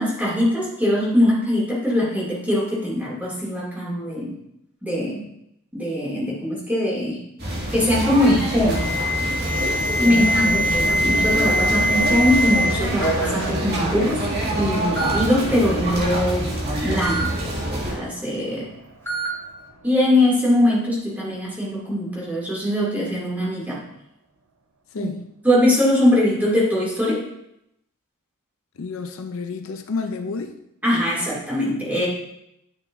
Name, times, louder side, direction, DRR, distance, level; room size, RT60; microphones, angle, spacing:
voice 1, 0.0-4.3 4.8-5.2 5.7-7.2 7.7-8.8 10.0-14.2 14.6-16.5 16.8-17.3 17.9-18.7 19.8-23.8 25.0-25.1 25.4-27.2 30.8-32.1, left 1 dB, 10° right, -7 dB, 2.6 m, -21 dB
sound 1, 7.4-18.0, right 1 dB, 45° right, 1.9 m, -26 dB
Alarm, 8.7-12.7 13.0-13.4 14.3-14.4 15.0-15.2 17.0-17.2 19.1-19.3, equal, 10° left, 2.4 m, -23 dB
sound 2, 9.8-22.7 23.1-23.2, right 3 dB, 80° right, 0.8 m, -38 dB
voice 2, 10.1-11.0 24.9-25.2 28.8-30.6, left 4 dB, 65° left, 6 dB, 0.5 m, -30 dB
10.5 x 5.9 x 2.6 m, 0.83 s
head